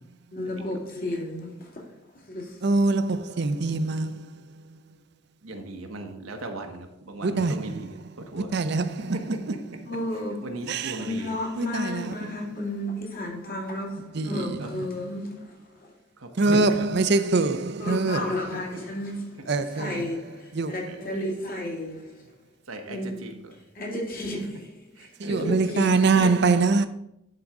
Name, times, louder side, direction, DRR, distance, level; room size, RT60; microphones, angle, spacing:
voice 1, 0.3-2.6 9.9-10.6 10.9-15.9 17.8-22.4 22.8-26.3, left 1 dB, 45° left, 2.0 m, -33 dB
voice 2, 2.6-4.8 7.2-7.9 8.4-9.2 10.7-11.1 11.6-12.1 13.9-14.9 16.4-18.4 19.5-20.0 20.5-20.9 25.2-26.9, right 3 dB, 55° right, 0.5 m, -24 dB
voice 3, 5.4-8.0 8.3-8.5 9.1-9.2 10.4-11.4 14.6-14.7 16.2-16.9 18.2-18.3 20.9-21.0 22.7-23.6 25.0-25.5, right 2 dB, 80° right, 1.1 m, -37 dB
10.5 x 3.9 x 4.8 m
head